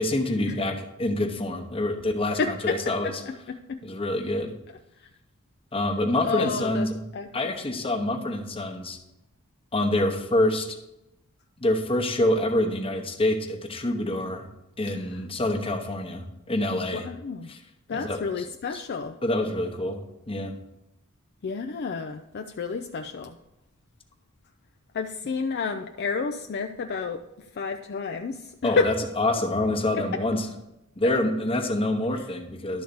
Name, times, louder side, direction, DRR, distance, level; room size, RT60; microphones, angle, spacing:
voice 1, 0.0-3.1 3.8-4.5 5.7-7.0 7.3-9.0 9.7-10.8 11.6-14.5 14.8-17.1 17.5-17.6 17.9-18.4 19.2-20.5 28.6-30.5 31.0-32.8, left 1 dB, 25° left, 4 dB, 1.0 m, -26 dB
voice 2, 2.3-3.8 5.0-5.1 6.2-6.9 7.1-7.5 15.1-15.2 16.9-17.5 17.9-19.2 21.4-23.4 24.9-27.2 27.5-28.9 29.9-30.2 31.0-31.2 32.1-32.3, left 5 dB, 50° left, 6 dB, 0.4 m, -30 dB
11.5 x 3.9 x 6.9 m, 0.90 s
head